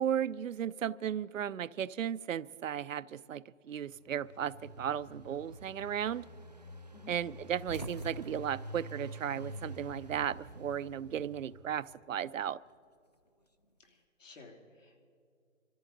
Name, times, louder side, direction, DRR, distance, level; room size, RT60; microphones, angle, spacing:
voice 1, 0.0-6.2 7.1-12.6, right 9 dB, 80° right, 18 dB, 0.5 m, -35 dB
Engine, 3.8-11.9, equal, 35° right, 0.4 m, -47 dB
sound 1, 7.6-9.9 10.2-11.2 12.4-13.9, left 1 dB, 35° left, 0.4 m, -49 dB
voice 2, 13.8-15.0, left 3 dB, 75° left, 1 dB, 3.1 m, -55 dB
23.5 x 14.0 x 3.9 m, 2.3 s
hypercardioid pair, 170°, 39 cm